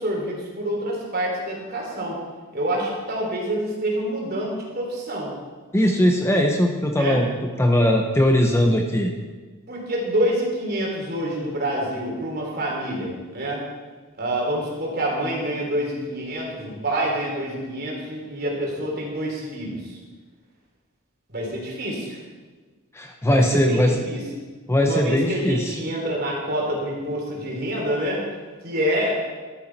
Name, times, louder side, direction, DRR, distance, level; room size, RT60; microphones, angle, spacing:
voice 1, 0.0-2.2 2.5-5.3 6.3-6.4 6.9-7.2 9.7-13.6 14.2-20.0 21.3-22.2 23.3-24.2 24.8-28.2 28.6-29.2, right 1 dB, 45° right, -2 dB, 3.3 m, -27 dB
voice 2, 5.7-9.1 22.9-23.9 24.7-25.8, left 1 dB, 10° left, 3 dB, 0.7 m, -20 dB
12.5 x 9.9 x 4.5 m, 1.4 s
head